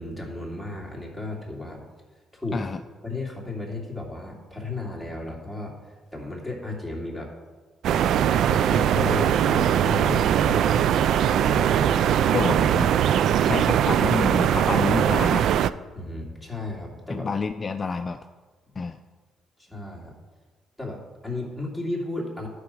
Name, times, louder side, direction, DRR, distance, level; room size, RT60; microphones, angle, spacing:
voice 1, 0.0-1.8 2.3-2.7 3.0-7.3 8.1-12.2 15.9-17.3 19.6-20.1 20.8-22.5, left 2 dB, 5° right, -2 dB, 2.8 m, -34 dB
sound 1, 7.8-15.7, right 10 dB, 75° right, 0.3 m, -21 dB
voice 2, 12.3-12.9 13.4-15.5 17.1-18.2 18.8-19.0, left 4 dB, 35° left, 7 dB, 0.4 m, -28 dB
11.5 x 5.0 x 6.2 m, 1.3 s
cardioid pair, 90°, 0 cm